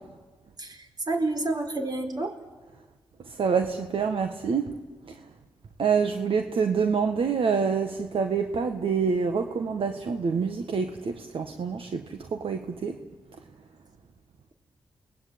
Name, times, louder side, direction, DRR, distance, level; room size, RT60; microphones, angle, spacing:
voice 1, 1.1-2.3, right 2 dB, 45° right, 4 dB, 4.5 m, -29 dB
voice 2, 3.3-4.7 5.8-13.0, right 5 dB, 65° right, 6 dB, 1.5 m, -26 dB
29.0 x 20.0 x 8.6 m, 1.4 s
cardioid pair, 50°, 10 cm